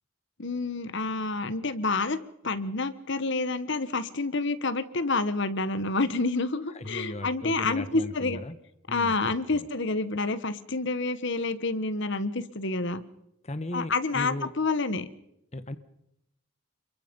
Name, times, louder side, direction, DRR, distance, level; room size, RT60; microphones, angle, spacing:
voice 1, 0.4-2.2 2.4-8.4 8.9-13.0 13.7-15.1, left 3 dB, 55° left, 14 dB, 1.4 m, -28 dB
voice 2, 6.7-8.6 8.9-9.7 13.4-14.5 15.5-15.8, left 1 dB, 30° left, 11 dB, 1.1 m, -37 dB
29.5 x 23.0 x 5.4 m, 0.82 s
head